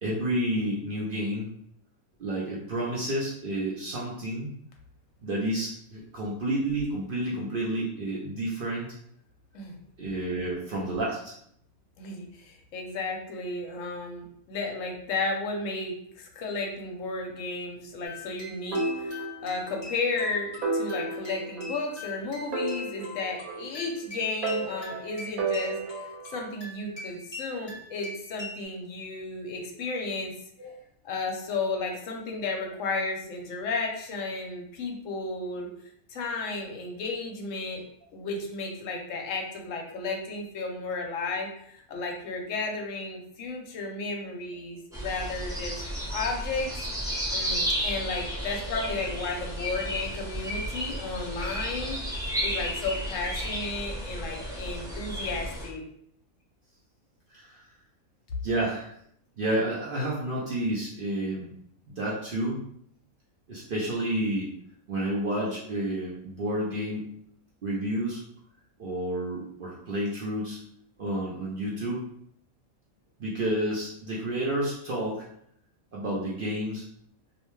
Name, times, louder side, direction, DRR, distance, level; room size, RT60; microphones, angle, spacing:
voice 1, 0.0-1.5 2.2-4.5 5.2-8.9 10.0-11.3 30.6-30.7 57.3-57.6 58.4-58.9 59.4-61.5 61.9-62.6 63.5-64.5 64.9-67.1 67.6-68.2 68.8-70.6 71.0-72.0 73.2-75.2 75.9-76.8, right 1 dB, 60° right, -5 dB, 0.6 m, -30 dB
voice 2, 12.0-30.3 31.0-35.7 36.1-37.8 38.1-45.8 46.1-46.8 47.3-52.0 52.4-55.8, left 3 dB, 70° left, 1 dB, 0.9 m, -33 dB
sound 1, 18.0-28.6, left 2 dB, 20° left, 0.9 m, -42 dB
sound 2, 18.7-19.9 20.2-20.3 20.6-22.1 22.5-24.0 24.4-26.3, right 3 dB, 85° right, 1.2 m, -32 dB
sound 3, 44.9-55.7, equal, 5° right, 0.4 m, -33 dB
2.6 x 2.1 x 3.0 m, 0.68 s
omnidirectional pair, 1.5 m